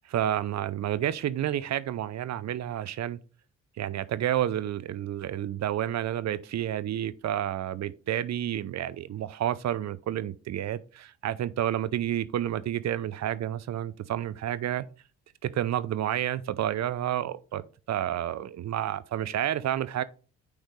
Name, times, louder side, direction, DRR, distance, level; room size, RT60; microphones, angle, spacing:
voice 1, 0.1-3.2 3.8-14.9 15.4-20.0, right 11 dB, 50° right, 0.7 m, -30 dB
9.1 x 5.1 x 3.2 m
hypercardioid pair, 50°, 34 cm